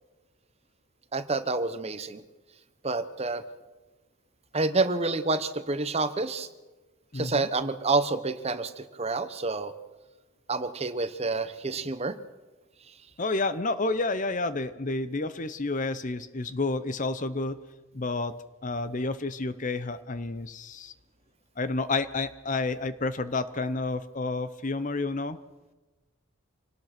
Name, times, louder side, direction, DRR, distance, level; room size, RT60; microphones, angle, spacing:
voice 1, 1.1-2.2 2.8-3.4 4.5-6.5 7.1-9.7 10.5-12.2, right 3 dB, 30° right, 11 dB, 1.0 m, -28 dB
voice 2, 7.1-7.5 13.2-17.6 17.9-18.3 18.6-20.9 21.6-25.4, left 3 dB, 35° left, 14 dB, 0.8 m, -30 dB
25.5 x 18.5 x 6.0 m, 1.2 s
head